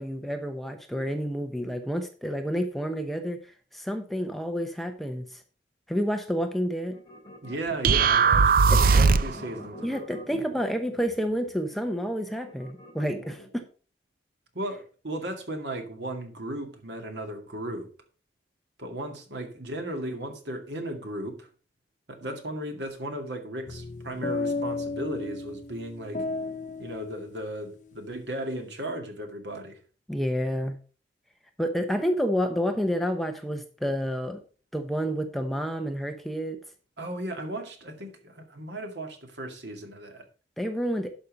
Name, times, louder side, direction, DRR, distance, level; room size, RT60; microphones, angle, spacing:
voice 1, 0.0-3.4 3.7-5.4 5.9-7.0 8.7-9.0 9.8-13.6 30.1-30.8 31.6-34.4 34.7-36.6 40.6-41.1, equal, ahead, 0.9 m, -29 dB
sound 1, 6.9-13.7, left 1 dB, 25° left, 2.9 m, -46 dB
voice 2, 7.4-10.0 14.5-17.9 18.8-21.5 22.1-26.2 26.8-29.8 37.0-40.3, right 1 dB, 70° right, 2.2 m, -36 dB
sound 2, 7.8-9.4, right 5 dB, 50° right, 0.4 m, -19 dB
sound 3, 23.7-28.0, left 3 dB, 40° left, 0.6 m, -34 dB
11.5 x 5.6 x 5.2 m
head